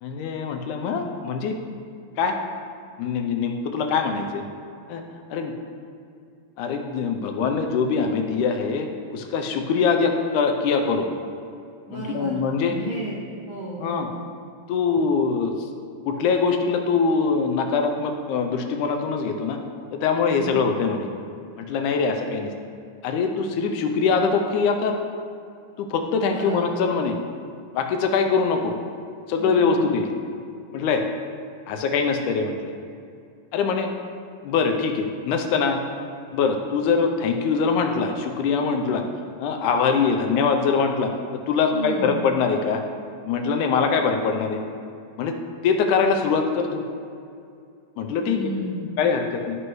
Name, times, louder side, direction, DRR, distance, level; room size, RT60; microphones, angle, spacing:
voice 1, 0.0-1.5 2.2-2.4 3.0-4.4 4.9-5.0 5.3-5.5 6.6-11.1 11.9-12.8 13.8-14.1 14.7-15.5 16.1-19.6 19.9-21.1 21.6-22.5 23.0-24.9 25.8-27.2 27.8-28.7 29.3-30.1 30.7-31.0 31.7-32.7 33.5-33.9 34.4-35.8 36.3-39.0 39.4-41.1 41.5-42.8 43.2-44.6 45.2-45.4 45.6-46.8 48.0-48.5 49.0-49.6, left 5 dB, 80° left, 4 dB, 2.0 m, -23 dB
voice 2, 11.9-12.4 12.6-13.2 13.5-14.0 20.4-20.6 26.2-26.6 29.4-29.8 41.7-42.2 48.2-48.9, right 2 dB, 70° right, -4 dB, 1.2 m, -33 dB
12.0 x 6.1 x 3.1 m, 2.4 s
omnidirectional pair, 3.8 m